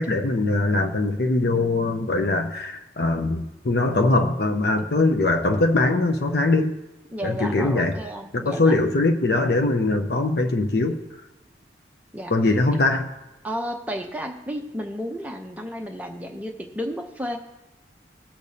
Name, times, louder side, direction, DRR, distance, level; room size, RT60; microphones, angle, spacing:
voice 1, 0.0-6.7 7.2-7.9 8.3-11.0 12.3-13.1, left 2 dB, 55° left, 4 dB, 0.6 m, -22 dB
voice 2, 7.1-8.7 12.1-12.3 13.4-17.4, equal, 10° right, 2 dB, 0.6 m, -32 dB
20.0 x 6.7 x 2.7 m, 1.0 s
head